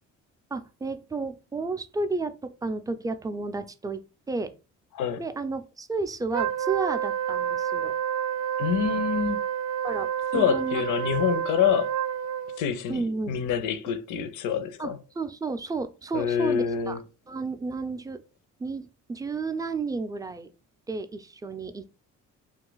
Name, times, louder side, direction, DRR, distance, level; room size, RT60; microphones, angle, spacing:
voice 1, 0.5-4.0 4.3-4.5 5.2-7.9 9.8-10.8 12.9-13.4 14.8-14.9 15.2-17.0 17.3-18.2 18.6-20.5 20.9-22.0, right 3 dB, 10° right, 0.3 m, -32 dB
voice 2, 4.9-5.3 8.6-9.4 10.3-11.9 12.6-15.0 16.1-17.0, left 8 dB, 90° left, 0.5 m, -26 dB
Wind instrument woodwind instrument, 6.3-12.6, right 9 dB, 65° right, 0.5 m, -29 dB
2.6 x 2.3 x 3.9 m
cardioid pair, 90°, 30 cm